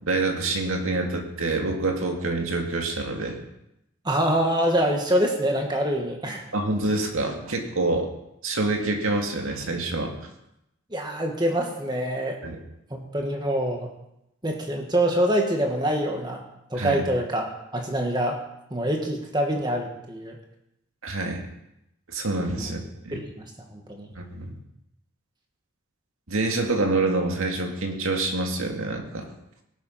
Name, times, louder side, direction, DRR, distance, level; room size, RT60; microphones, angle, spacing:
voice 1, 0.0-3.4 6.5-8.1 8.4-10.1 12.4-12.6 16.8-17.0 21.0-21.4 22.1-22.8 23.0-23.2 24.2-24.5 26.3-29.3, right 2 dB, 70° right, 2 dB, 2.2 m, -26 dB
voice 2, 4.0-6.4 10.9-12.4 12.9-13.9 14.4-16.4 16.7-17.5 17.7-18.4 18.7-20.4 22.6-22.7 23.1-23.4 23.7-24.1, right 1 dB, 20° right, 2 dB, 2.0 m, -25 dB
18.5 x 8.0 x 5.9 m, 0.84 s
head